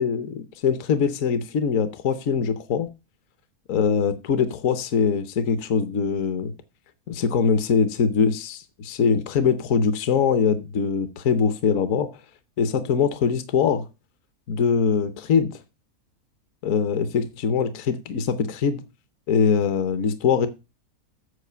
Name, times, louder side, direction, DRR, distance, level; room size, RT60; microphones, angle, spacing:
voice 1, 0.0-2.9 3.7-6.5 7.1-12.1 12.6-13.9 14.5-15.6 16.6-18.8 19.3-20.5, left 6 dB, 70° left, 1.1 m, -22 dB
8.2 x 4.8 x 6.7 m
omnidirectional pair, 1.5 m